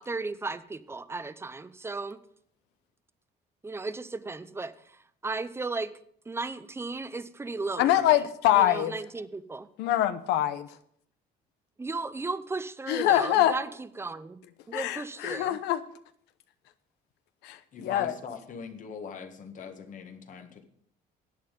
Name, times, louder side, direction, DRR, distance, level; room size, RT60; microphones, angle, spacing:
voice 1, 0.0-2.2 3.6-5.9 6.3-8.2 8.5-9.7 11.8-13.7 14.0-14.4 14.7-15.6, right 3 dB, 15° right, 14 dB, 0.6 m, -35 dB
voice 2, 7.8-9.0 9.8-10.7 12.9-13.5 14.7-15.8 17.4-18.1, left 12 dB, 90° left, 12 dB, 0.8 m, -24 dB
voice 3, 17.7-20.6, left 5 dB, 50° left, 6 dB, 1.6 m, -41 dB
11.5 x 8.7 x 5.2 m, 0.66 s
cardioid pair, 110°, 17 cm